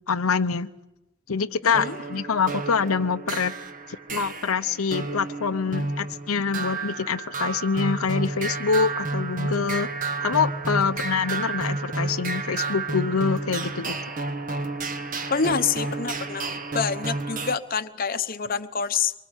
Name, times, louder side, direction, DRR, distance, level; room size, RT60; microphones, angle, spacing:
voice 1, 0.1-0.7 1.3-3.5 4.1-9.9 10.2-14.0, left 5 dB, 85° left, 9 dB, 0.8 m, -25 dB
voice 2, 1.6-2.0 15.3-16.5 16.7-19.1, left 6 dB, 40° left, 8 dB, 0.9 m, -26 dB
sound 1, 1.7-17.6, right 3 dB, 40° right, 1.5 m, -31 dB
25.0 x 23.5 x 8.1 m, 0.96 s
head